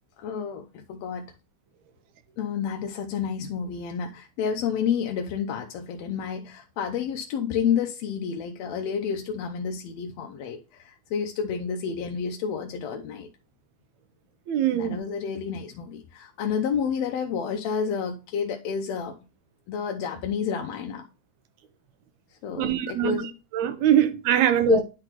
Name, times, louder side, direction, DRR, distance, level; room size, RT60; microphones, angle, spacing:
voice 1, 0.2-1.3 2.4-13.3 14.7-19.2 19.7-21.1 22.4-23.4 24.6-24.8, left 7 dB, 70° left, 1.8 m, -30 dB
voice 2, 14.5-15.0 22.6-23.2 23.5-24.8, right 11 dB, 80° right, 2.2 m, -22 dB
10.5 x 4.0 x 2.9 m
omnidirectional pair, 3.3 m